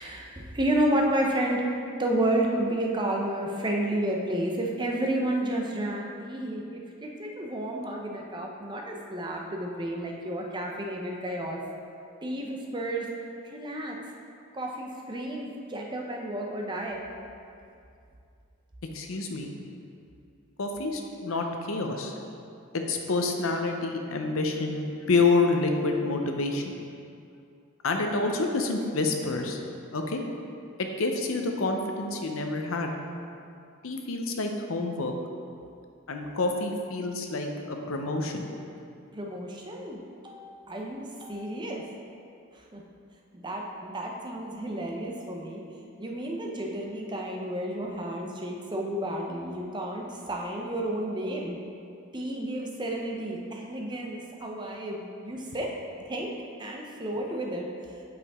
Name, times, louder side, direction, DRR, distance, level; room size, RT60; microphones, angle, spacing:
voice 1, 0.0-11.6 12.2-13.1 13.5-14.0 14.5-17.0 39.1-41.8 42.7-42.8 43.3-45.6 46.0-51.6 52.1-55.7 56.1-56.3 56.6-57.7, right 1 dB, 20° right, 0 dB, 0.6 m, -31 dB
voice 2, 18.9-19.5 20.6-22.2 22.7-26.8 27.8-29.6 29.9-30.2 31.0-32.9 33.8-35.1 36.1-38.5, left 3 dB, 70° left, 4 dB, 0.7 m, -28 dB
8.2 x 4.9 x 3.6 m, 2.5 s
head